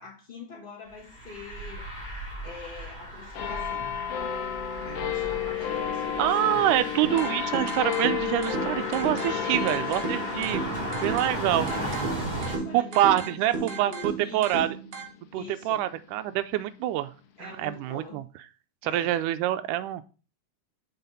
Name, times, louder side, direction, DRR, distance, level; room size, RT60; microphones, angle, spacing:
voice 1, 0.0-1.9 2.4-4.0 4.8-7.0 9.4-12.0 12.3-14.8 15.3-15.9 17.4-18.2 18.8-19.2, left 4 dB, 45° left, 0.6 m, -44 dB
sound 1, 0.9-12.6, right 1 dB, 15° right, 2.4 m, -36 dB
sound 2, 3.3-16.2 16.9-17.0, left 9 dB, 85° left, 1.3 m, -33 dB
voice 2, 6.2-10.6 11.0-11.7 12.7-14.7 15.3-17.1 17.4-18.2 18.8-20.0, right 13 dB, 80° right, 2.0 m, -26 dB
sound 3, 7.0-15.0, right 4 dB, 65° right, 2.9 m, -35 dB
5.8 x 4.5 x 5.4 m
omnidirectional pair, 3.8 m